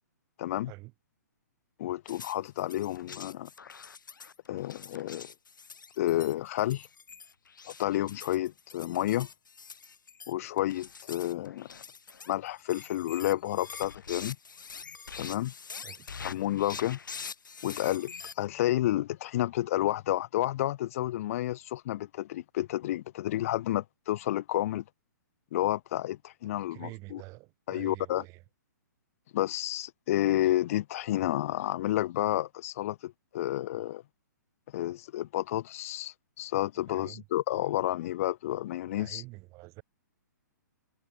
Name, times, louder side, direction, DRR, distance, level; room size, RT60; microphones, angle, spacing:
voice 1, 0.4-0.7 1.8-3.5 4.5-5.3 6.0-6.9 7.7-9.3 10.3-11.8 12.3-14.4 15.2-15.5 16.2-17.0 17.6-24.8 25.5-27.2 27.7-28.2 29.3-34.0 34.7-39.2, left 14 dB, 45° left, 0.6 m, -30 dB
sound 1, 2.1-18.4, left 5 dB, 80° left, 1.7 m, -45 dB
voice 2, 26.7-28.4 36.9-37.2 38.9-39.8, right 24 dB, 30° right, 2.3 m, -47 dB
hypercardioid pair, 135°, 10 cm